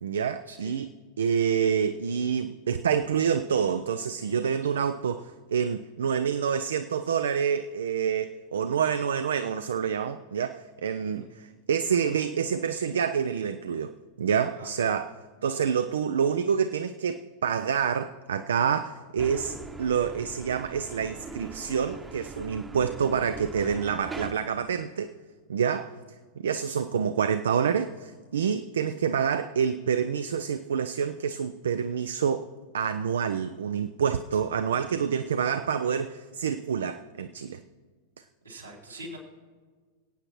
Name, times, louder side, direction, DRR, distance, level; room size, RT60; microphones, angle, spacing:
voice 1, 0.0-15.1 15.4-25.1 25.5-25.9 26.4-32.5 32.7-37.6, right 7 dB, 65° right, 11 dB, 0.3 m, -27 dB
voice 2, 11.0-11.3 14.6-14.9 38.4-39.2, right 1 dB, 80° right, -3 dB, 3.1 m, -44 dB
sound 1, 19.2-24.3, right 4 dB, 10° right, 0.9 m, -41 dB
24.5 x 8.7 x 3.0 m, 1.5 s
figure-of-eight pair, 90°, 0 cm